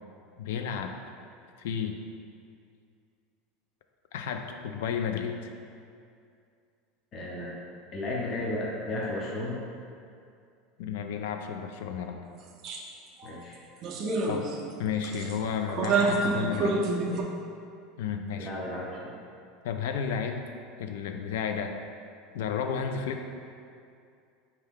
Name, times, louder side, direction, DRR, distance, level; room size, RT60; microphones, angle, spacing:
voice 1, 0.4-0.9 1.6-2.0 4.1-5.5 10.8-12.2 14.3-14.5 14.8-16.8 18.0-18.5 19.6-20.5 20.8-21.7 22.3-23.3, left 7 dB, 80° left, 6 dB, 0.3 m, -32 dB
voice 2, 7.1-7.5 7.9-9.6 13.2-13.6 18.4-19.2, left 1 dB, 30° left, -4 dB, 0.7 m, -33 dB
sound 1, 12.6-12.8 13.2-13.3 13.8-14.7 15.0-15.3 15.7-17.2, right 3 dB, 35° right, 0.4 m, -28 dB
4.5 x 2.8 x 3.5 m, 2.4 s
supercardioid pair, 160°, 0 cm